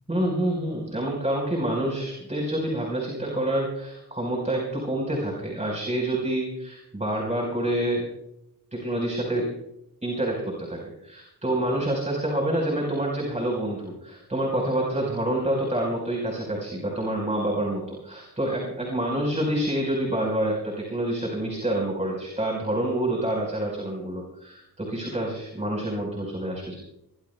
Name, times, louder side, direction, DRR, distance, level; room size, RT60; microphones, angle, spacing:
voice 1, 0.1-8.0 8.7-9.5 10.0-26.8, right 1 dB, 20° right, -1 dB, 4.7 m, -27 dB
21.5 x 20.5 x 2.3 m, 0.83 s
cardioid pair, 80°, 37 cm